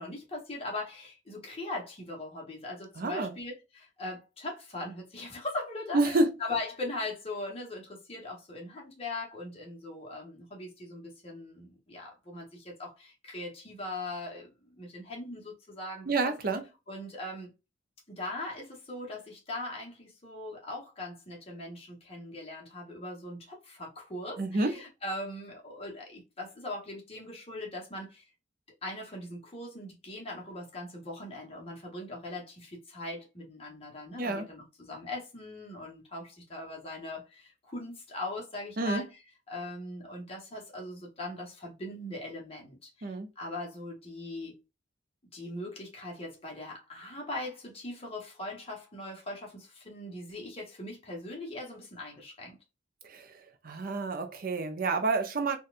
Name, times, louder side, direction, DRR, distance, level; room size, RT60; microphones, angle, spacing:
voice 1, 0.0-16.3 16.9-17.5 18.1-28.2 28.8-39.1 39.5-44.6 45.3-52.6, left 2 dB, 30° left, 1.2 m, -40 dB
voice 2, 3.0-3.3 5.9-6.3 16.1-16.6 24.4-24.7 34.2-34.5 38.8-39.0 43.0-43.3 53.0-53.4 53.6-55.6, right 3 dB, 50° right, 0.6 m, -28 dB
4.1 x 2.4 x 2.5 m
head